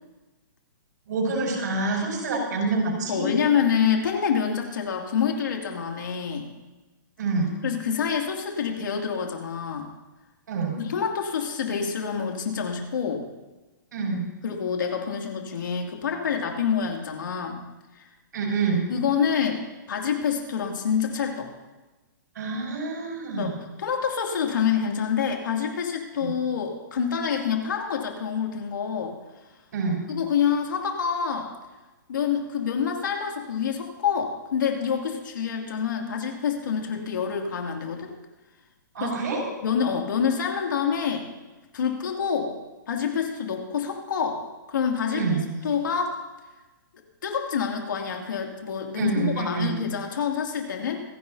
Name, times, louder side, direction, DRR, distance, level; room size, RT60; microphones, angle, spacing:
voice 1, 1.1-3.3 7.2-7.6 10.5-10.8 13.9-14.2 18.3-18.9 22.3-23.5 26.2-26.4 29.7-30.0 38.9-39.4 45.1-45.5 49.0-49.8, right 4 dB, 60° right, -2 dB, 5.5 m, -27 dB
voice 2, 3.1-6.5 7.6-9.9 10.8-13.3 14.4-17.6 18.0-18.1 18.9-19.6 19.9-21.5 23.4-23.5 23.8-29.2 30.1-31.5 32.1-38.2 39.0-39.1 39.6-41.3 41.7-42.5 42.9-46.2 47.2-51.0, left 7 dB, 70° left, 2 dB, 2.6 m, -27 dB
27.0 x 10.5 x 2.8 m, 1.1 s
hypercardioid pair, 175°, 11 cm